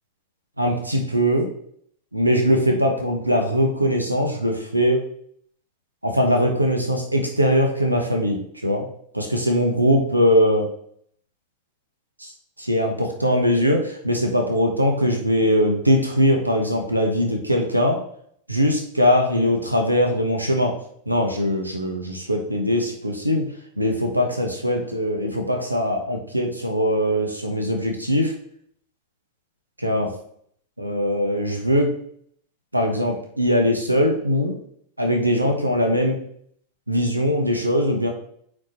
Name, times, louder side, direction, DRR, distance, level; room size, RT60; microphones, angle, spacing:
voice 1, 0.6-1.5 2.1-5.0 6.0-8.8 9.1-10.7 12.2-12.3 12.6-18.0 18.5-20.7 21.1-23.5 23.8-28.3 29.8-30.1 30.8-31.9 32.7-34.6 35.0-36.2 36.9-38.1, equal, 85° right, 3 dB, 1.1 m, -21 dB
9.3 x 4.5 x 2.9 m, 0.65 s
figure-of-eight pair, 90°, 0 cm